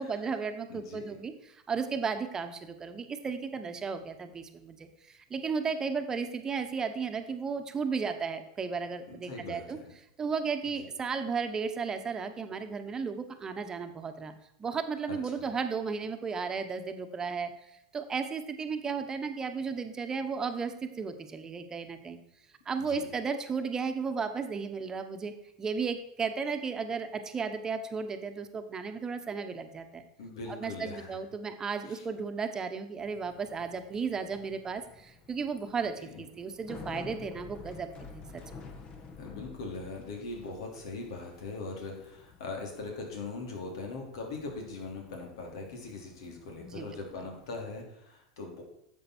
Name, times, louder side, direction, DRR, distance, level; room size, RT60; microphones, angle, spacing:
voice 1, 0.0-9.8 10.2-14.3 14.6-17.5 17.9-22.2 22.6-25.3 25.6-30.0 30.5-38.7 46.6-46.9, right 5 dB, 20° right, 7 dB, 1.3 m, -34 dB
voice 2, 0.7-1.1 9.1-9.9 10.6-10.9 15.1-15.5 22.8-23.0 30.2-31.2 31.9-32.0 39.2-48.6, left 3 dB, 70° left, 1 dB, 3.1 m, -41 dB
Bicycle, 33.0-47.8, left 4 dB, 35° left, 1.5 m, -51 dB
10.5 x 7.4 x 4.5 m, 0.83 s
hypercardioid pair, 100°, 3 cm